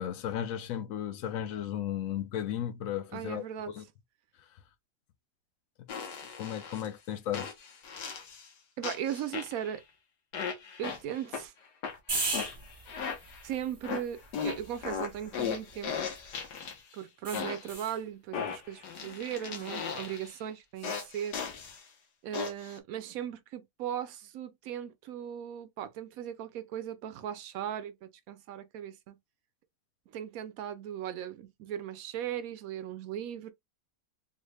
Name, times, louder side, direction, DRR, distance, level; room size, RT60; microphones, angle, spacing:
voice 1, 0.0-3.8 4.4-4.5 6.4-7.5, left 10 dB, 70° left, 0.8 m, -35 dB
voice 2, 3.1-3.7 8.8-9.8 10.8-11.5 13.4-15.9 16.9-21.4 22.2-29.2 30.1-33.5, right 10 dB, 70° right, 0.9 m, -38 dB
sound 1, 5.9-6.9 7.3-8.5 8.8-9.8 10.3-11.4 11.8-13.5 13.8-16.9 17.3-17.8 18.3-20.3 20.8-21.8 22.3-22.8, left 6 dB, 85° left, 1.4 m, -37 dB
sound 2, 12.1-16.5 17.2-18.0 20.8-21.1, right 3 dB, 30° right, 0.4 m, -39 dB
3.8 x 2.1 x 3.3 m
omnidirectional pair, 1.7 m